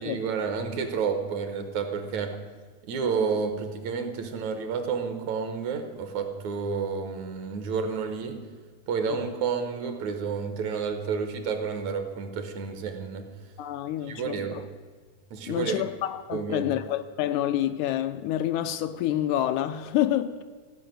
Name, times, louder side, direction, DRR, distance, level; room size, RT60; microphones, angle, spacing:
voice 1, 0.0-2.3 2.9-8.4 8.9-13.3 14.1-14.7 15.3-15.8 16.3-16.7, right 5 dB, 70° right, 2.3 m, -30 dB
voice 2, 13.6-14.6 15.5-20.4, left 12 dB, 80° left, 1.9 m, -28 dB
15.0 x 5.7 x 9.1 m
omnidirectional pair, 3.6 m